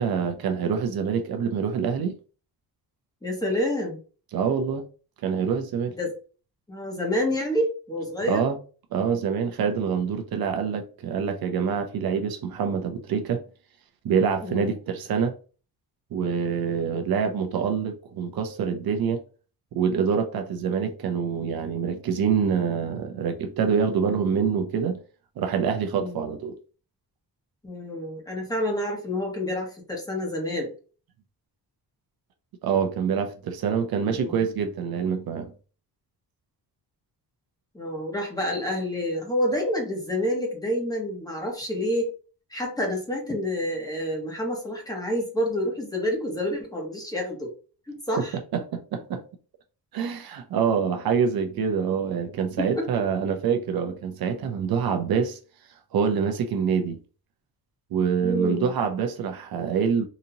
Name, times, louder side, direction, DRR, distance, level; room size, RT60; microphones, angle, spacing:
voice 1, 0.0-2.1 4.3-4.8 5.2-5.9 8.3-8.6 8.9-13.4 14.0-15.3 16.1-19.2 19.7-25.0 25.4-26.6 32.6-35.5 48.5-49.2 49.9-55.4 55.9-57.0 57.9-60.1, right 6 dB, 65° right, 0.6 m, -26 dB
voice 2, 3.2-4.0 6.0-6.1 6.7-8.4 14.4-14.7 25.9-26.2 27.6-30.7 34.1-34.3 37.7-42.1 42.5-47.5 47.9-48.4 52.6-52.8 58.2-58.7, left 1 dB, 10° left, 1.1 m, -28 dB
4.0 x 2.7 x 2.7 m
wide cardioid pair, 145°, 39 cm